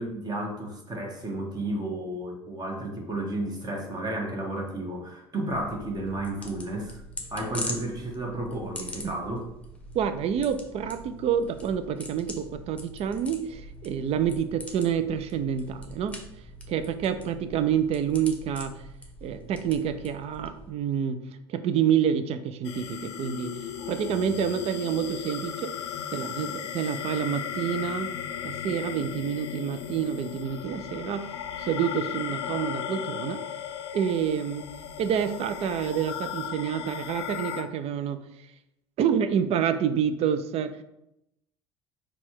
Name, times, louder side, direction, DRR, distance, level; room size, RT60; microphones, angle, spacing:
voice 1, 0.0-7.0 7.3-9.4, right 1 dB, 30° right, 1 dB, 1.3 m, -32 dB
sound 1, 5.5-20.7, left 1 dB, 10° left, 0.9 m, -42 dB
voice 2, 9.9-16.2 16.7-18.9 19.2-21.2 21.5-25.7 26.1-28.1 28.4-31.3 31.6-33.4 33.9-34.7 35.0-38.5 39.0-40.8, right 8 dB, 45° right, 11 dB, 0.4 m, -28 dB
sound 2, 22.6-37.6, left 8 dB, 80° left, 0.4 m, -36 dB
4.1 x 2.3 x 4.5 m, 0.83 s
hypercardioid pair, 65°, 14 cm